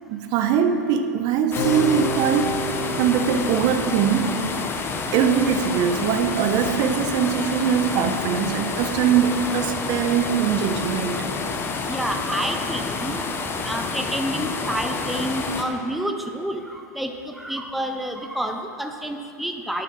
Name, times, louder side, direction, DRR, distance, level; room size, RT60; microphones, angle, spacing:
voice 1, 0.1-2.5 3.0-4.4 5.1-11.3, right 7 dB, 45° right, 8 dB, 0.9 m, -22 dB
Keyboard (musical), 1.5-7.7, right 1 dB, 65° left, 1.2 m, -34 dB
sound 1, 1.5-15.6, left 4 dB, 25° left, 1.1 m, -29 dB
voice 2, 11.9-13.2 13.7-19.8, right 1 dB, ahead, 4 dB, 0.7 m, -29 dB
11.5 x 8.6 x 4.7 m, 2.5 s
hypercardioid pair, 100°, 10 cm